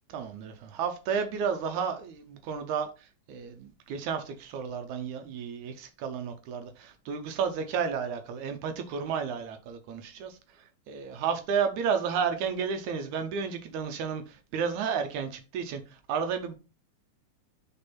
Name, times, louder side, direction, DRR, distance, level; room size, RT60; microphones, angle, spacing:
voice 1, 0.1-16.6, right 6 dB, 75° right, 2.0 m, -32 dB
5.2 x 4.4 x 4.2 m
omnidirectional pair, 3.7 m